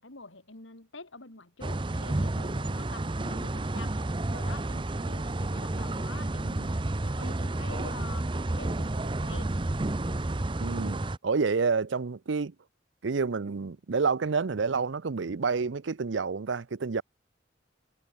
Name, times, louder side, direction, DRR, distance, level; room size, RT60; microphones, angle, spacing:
voice 1, 0.0-4.0 4.3-6.7 7.0-9.6 10.0-10.3, left 3 dB, 90° left, 3.9 m, -47 dB
sound 1, 1.6-11.2, right 2 dB, 25° right, 0.7 m, -31 dB
voice 2, 10.6-12.5 13.0-17.0, right 4 dB, 75° right, 0.6 m, -29 dB
head